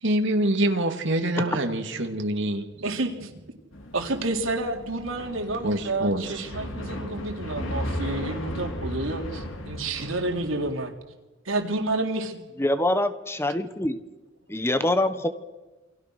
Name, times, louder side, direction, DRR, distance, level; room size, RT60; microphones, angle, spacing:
voice 1, 0.0-2.8 5.6-6.4, right 1 dB, 65° right, 4 dB, 3.0 m, -25 dB
voice 2, 2.8-3.3 3.9-10.9 11.5-12.4, right 2 dB, 90° right, 3 dB, 3.7 m, -29 dB
sound 1, 3.7-10.7, left 1 dB, 75° left, 3.5 m, -35 dB
voice 3, 12.6-14.0 14.5-15.3, left 1 dB, 15° left, 10 dB, 1.3 m, -24 dB
28.5 x 24.0 x 6.5 m, 1.1 s
head